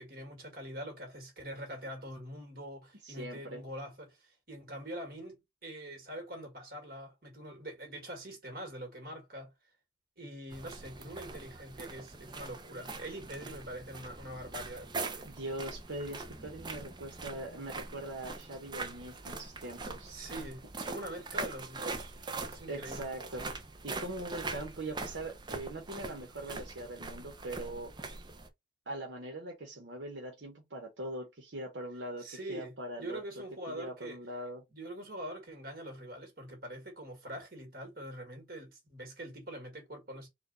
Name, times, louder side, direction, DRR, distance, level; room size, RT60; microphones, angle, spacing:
voice 1, 0.0-9.5 10.2-15.4 20.1-23.1 32.2-34.2 34.7-40.3, right 1 dB, 50° right, 1.8 m, -44 dB
voice 2, 3.0-3.7 15.2-20.1 22.7-23.5 23.8-27.9 28.9-33.2 33.7-34.6, right 1 dB, 75° right, 1.0 m, -41 dB
sound 1, 10.5-28.5, right 3 dB, 25° right, 0.5 m, -42 dB
4.3 x 2.3 x 4.0 m
head